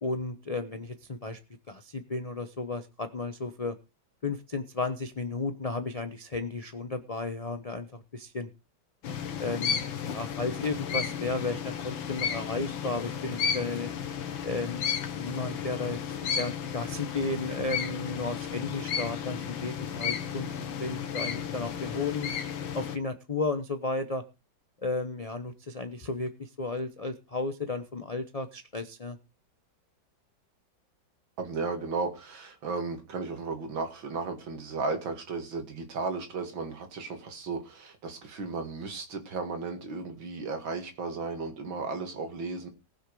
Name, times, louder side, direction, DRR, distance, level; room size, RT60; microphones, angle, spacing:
voice 1, 0.0-1.4 1.7-3.7 4.2-8.5 9.4-13.9 14.4-14.9 15.1-16.0 16.3-22.3 22.7-24.2 24.8-29.2, left 3 dB, 30° left, 8 dB, 0.6 m, -33 dB
sound 1, 9.0-23.0, left 7 dB, 90° left, 2.0 m, -33 dB
voice 2, 31.4-42.7, right 4 dB, 80° right, 7 dB, 2.8 m, -34 dB
19.5 x 6.5 x 4.8 m, 0.28 s
omnidirectional pair, 2.1 m